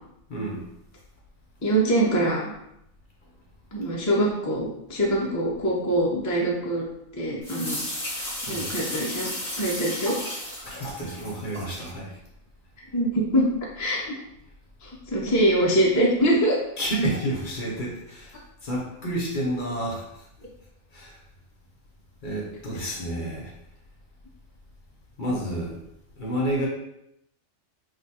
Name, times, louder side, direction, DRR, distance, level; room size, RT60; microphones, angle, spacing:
voice 1, 0.3-0.6 8.5-8.7 10.6-12.1 16.8-20.2 20.9-21.1 22.2-23.5 25.2-25.8 26.2-26.7, right 1 dB, 45° left, -3 dB, 0.8 m, -30 dB
voice 2, 1.6-2.5 3.7-6.8 7.2-7.8 8.4-9.3 9.6-10.2 12.9-13.5 13.8-14.1 14.8-16.6, right 1 dB, 30° left, -4 dB, 0.3 m, -23 dB
sound 1, 7.4-11.9, left 1 dB, ahead, 1.1 m, -34 dB
2.7 x 2.2 x 4.1 m, 0.79 s
omnidirectional pair, 1.3 m